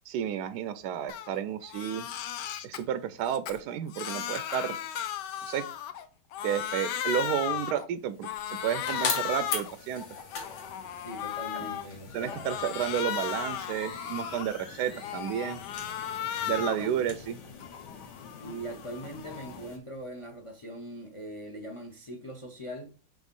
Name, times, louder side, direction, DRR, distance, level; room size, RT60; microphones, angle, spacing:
voice 1, 0.1-2.1 2.6-4.8 5.4-5.6 6.4-10.0 12.1-15.6 16.5-17.4, right 9 dB, 75° right, 1.0 m, -31 dB
Crying sobbing, 1.1-1.3 1.6-2.8 3.3-6.1 6.3-7.9 8.2-9.8 10.2-11.8 12.2-14.6 15.0-16.9 17.3-19.7, left 10 dB, 75° left, 1.2 m, -36 dB
sound 1, 8.1-19.8, left 5 dB, 90° left, 1.9 m, -41 dB
voice 2, 10.9-12.6 16.3-17.2 18.4-22.9, equal, 35° left, 0.5 m, -41 dB
sound 2, 13.4-16.1, left 4 dB, 50° left, 1.5 m, -46 dB
5.1 x 3.8 x 5.3 m
omnidirectional pair, 1.9 m